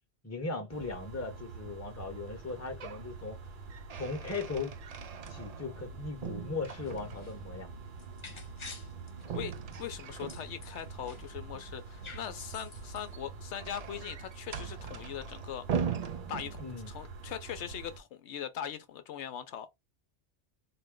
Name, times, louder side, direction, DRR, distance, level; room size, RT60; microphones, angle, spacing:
voice 1, 0.2-3.4 4.0-4.7 5.3-7.7 11.5-11.7 12.0-12.1 16.6-16.9, left 3 dB, 15° left, 0.9 m, -38 dB
sound 1, 0.7-18.0, right 4 dB, 50° right, 0.8 m, -46 dB
sound 2, 2.4-3.1 3.4-5.9 6.2-7.4 9.2-10.8 12.8-17.0, right 7 dB, 70° right, 0.3 m, -40 dB
sound 3, 6.7-11.4 11.7-13.1, left 4 dB, 40° left, 0.4 m, -50 dB
voice 2, 9.8-15.8 16.3-19.7, left 9 dB, 75° left, 0.8 m, -41 dB
4.1 x 2.1 x 3.7 m
omnidirectional pair, 1.2 m